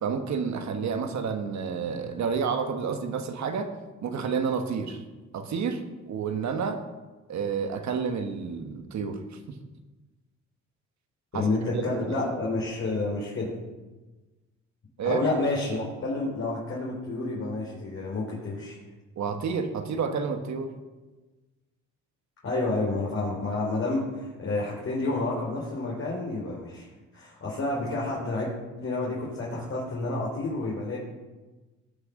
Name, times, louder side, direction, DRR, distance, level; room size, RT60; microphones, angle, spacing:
voice 1, 0.0-3.7 4.0-5.0 5.3-6.8 7.3-9.2 11.3-11.5 11.7-12.2 15.0-15.2 19.2-20.8, right 6 dB, 65° right, 6 dB, 1.4 m, -30 dB
voice 2, 11.3-13.5 15.0-18.8 22.4-26.9 27.1-28.5 28.8-31.0, left 2 dB, 45° left, -5 dB, 3.9 m, -29 dB
18.5 x 6.5 x 6.5 m, 1.2 s
cardioid pair, 90°, 30 cm